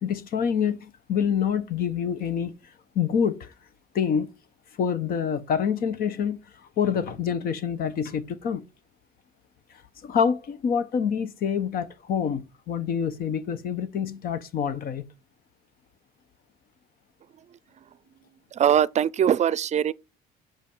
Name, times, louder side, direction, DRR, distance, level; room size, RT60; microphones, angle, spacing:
voice 1, 0.0-2.5 2.9-3.5 3.9-4.3 4.8-8.6 10.0-15.0, left 7 dB, 60° left, 1.2 m, -26 dB
voice 2, 18.5-19.9, right 9 dB, 40° right, 0.5 m, -21 dB
8.2 x 5.1 x 7.3 m
cardioid pair, 110°, 17 cm